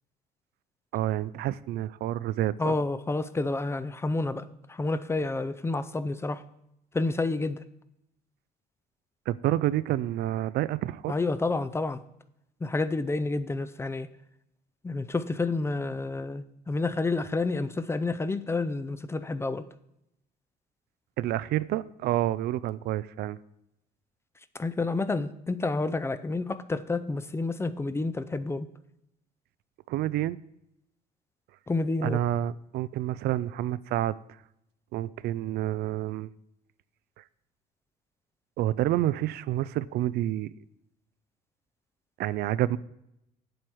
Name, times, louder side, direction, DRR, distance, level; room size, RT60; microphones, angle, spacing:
voice 1, 0.9-2.8 9.3-11.1 21.2-23.4 29.9-30.4 32.0-34.1 34.9-36.3 37.2-37.3 38.6-40.5 42.2-42.8, right 13 dB, 70° right, 18 dB, 0.4 m, -28 dB
voice 2, 2.6-4.4 4.7-6.4 6.9-7.6 11.1-12.0 12.6-14.1 14.8-19.6 24.5-28.7 31.7-32.2, left 3 dB, 15° left, 13 dB, 0.5 m, -29 dB
8.7 x 7.8 x 4.6 m, 0.81 s
cardioid pair, 110°, 17 cm